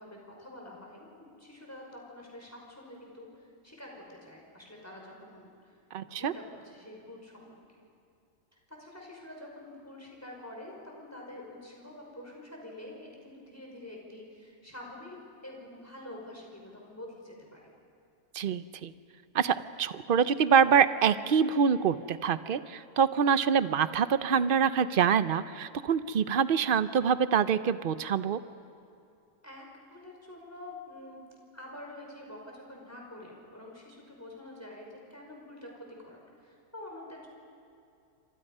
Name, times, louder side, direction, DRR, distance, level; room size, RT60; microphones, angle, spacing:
voice 1, 0.0-7.8 8.7-17.7 29.4-31.2 31.5-37.3, left 1 dB, 10° left, -1 dB, 5.4 m, -47 dB
voice 2, 5.9-6.3 18.3-18.9 19.3-28.4, right 7 dB, 55° right, 13 dB, 0.6 m, -25 dB
29.0 x 25.0 x 5.5 m, 2.6 s
omnidirectional pair, 1.7 m